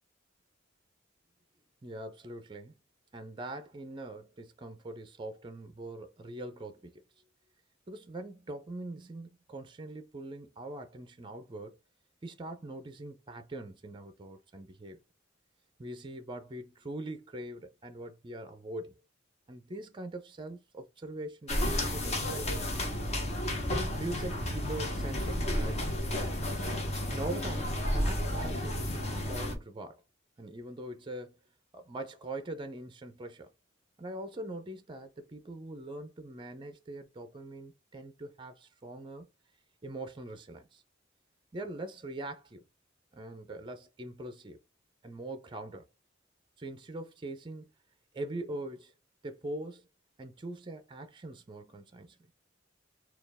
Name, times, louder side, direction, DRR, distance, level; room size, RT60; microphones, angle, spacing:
voice 1, 1.8-2.8 3.1-7.0 7.9-11.8 12.2-15.0 15.8-19.0 19.5-22.9 23.7-25.9 27.1-30.0 30.4-31.4 31.7-33.5 34.0-39.3 39.8-40.8 41.5-42.6 43.1-44.6 45.0-45.9 46.6-47.7 48.1-48.9 49.2-49.9 50.2-52.2, right 1 dB, 25° right, 0.5 m, -42 dB
sound 1, 21.5-29.6, left 1 dB, 35° left, 1.0 m, -32 dB
4.2 x 2.4 x 3.4 m
head